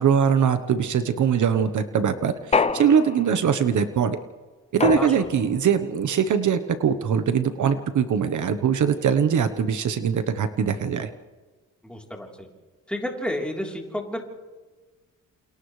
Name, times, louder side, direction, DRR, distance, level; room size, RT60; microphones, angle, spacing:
voice 1, 0.0-4.2 4.7-11.1, right 7 dB, 60° right, 9 dB, 1.1 m, -22 dB
sound 1, 2.5-3.5 4.8-5.6, left 4 dB, 20° left, 0.5 m, -26 dB
voice 2, 5.0-5.3 11.8-12.5 12.9-14.3, left 1 dB, 5° left, -1 dB, 3.6 m, -31 dB
29.0 x 28.5 x 3.3 m, 1.3 s
wide cardioid pair, 145°, 33 cm